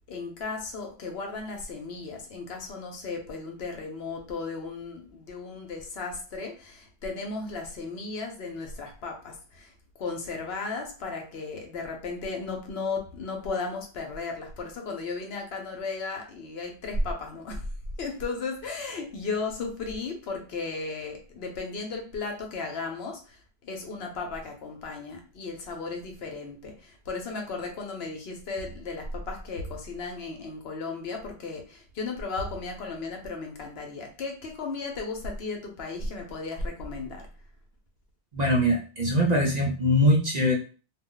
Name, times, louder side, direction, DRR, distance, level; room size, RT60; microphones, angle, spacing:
voice 1, 0.1-17.7 18.0-37.3, left 3 dB, 70° left, 3 dB, 0.9 m, -35 dB
voice 2, 38.3-40.5, equal, 45° right, -2 dB, 0.6 m, -22 dB
2.4 x 2.1 x 3.7 m, 0.38 s
omnidirectional pair, 1.1 m